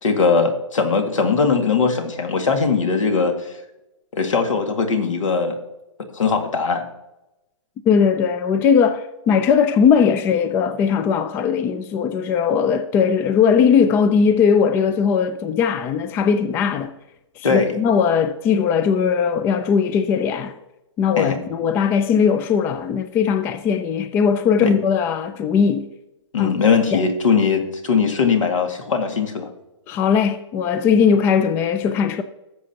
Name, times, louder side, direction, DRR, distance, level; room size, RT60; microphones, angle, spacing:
voice 1, 0.0-3.5 4.1-5.6 6.1-6.9 17.4-17.8 21.2-21.4 24.6-24.7 26.3-29.5, left 5 dB, 80° left, 2.1 m, -20 dB
voice 2, 7.9-16.9 17.4-20.5 21.0-25.9 26.4-26.5 26.9-27.0 29.9-32.2, left 6 dB, 15° left, 0.3 m, -19 dB
17.5 x 7.5 x 2.9 m
hypercardioid pair, 150°, 16 cm